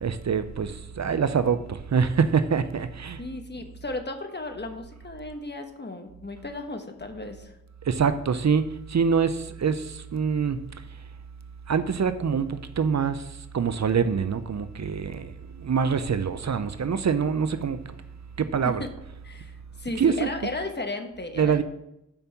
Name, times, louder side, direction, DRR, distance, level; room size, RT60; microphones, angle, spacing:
voice 1, 0.0-3.2 7.9-10.7 11.7-13.3 13.5-15.3 15.6-17.8 18.4-18.8 20.0-20.3 21.4-21.6, right 6 dB, 60° right, 0.6 m, -25 dB
voice 2, 3.2-7.5 18.6-18.9 19.2-21.6, left 2 dB, 35° left, 1.2 m, -35 dB
6.9 x 5.4 x 6.8 m
wide cardioid pair, 70°, 31 cm